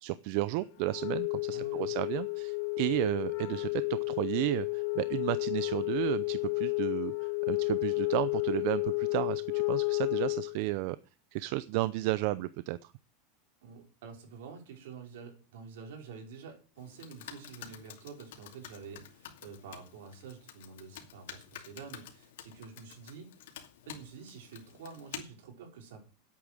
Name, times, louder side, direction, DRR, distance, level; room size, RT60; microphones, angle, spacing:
voice 1, 0.0-11.0 11.3-12.8, right 18 dB, 55° right, 16 dB, 0.5 m, -33 dB
Wind instrument woodwind instrument, 0.8-10.6, left 29 dB, 60° left, 2.3 m, -32 dB
voice 2, 1.5-1.9 13.6-23.3 23.9-26.0, right 5 dB, 80° right, 3 dB, 4.9 m, -48 dB
Computer keyboard, 16.8-25.2, left 11 dB, 80° left, 2.6 m, -49 dB
10.0 x 8.6 x 7.6 m, 0.37 s
supercardioid pair, 150°, 0 cm